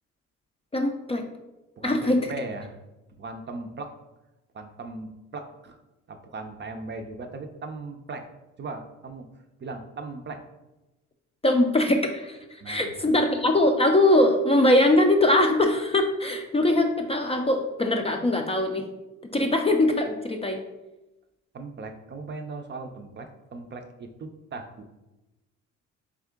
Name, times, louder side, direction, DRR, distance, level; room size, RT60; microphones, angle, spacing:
voice 1, 0.7-1.2 1.8-2.2 11.4-18.9 19.3-20.6, left 1 dB, 20° left, 4 dB, 0.4 m, -22 dB
voice 2, 1.8-2.8 3.2-3.9 4.5-5.8 6.1-8.3 8.6-9.3 9.6-10.4 12.6-13.1 21.5-25.0, right 3 dB, 35° right, 6 dB, 0.5 m, -38 dB
3.6 x 3.4 x 3.6 m, 1.0 s
cardioid pair, 90°, 30 cm